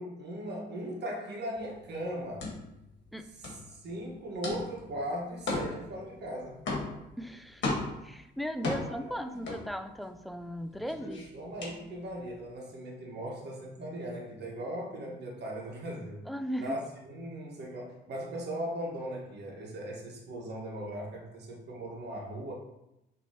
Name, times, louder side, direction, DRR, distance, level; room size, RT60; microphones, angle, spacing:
voice 1, 0.0-2.5 3.3-6.6 8.6-9.4 11.3-16.3 16.6-22.5, right 1 dB, 60° right, -2 dB, 1.3 m, -38 dB
sound 1, 1.6-10.3 10.6-12.4, left 2 dB, 70° left, 1.3 m, -37 dB
voice 2, 7.2-7.8 8.0-11.2 16.3-16.8, equal, ahead, 8 dB, 0.3 m, -37 dB
5.9 x 3.1 x 2.8 m, 0.88 s
cardioid pair, 90°, 20 cm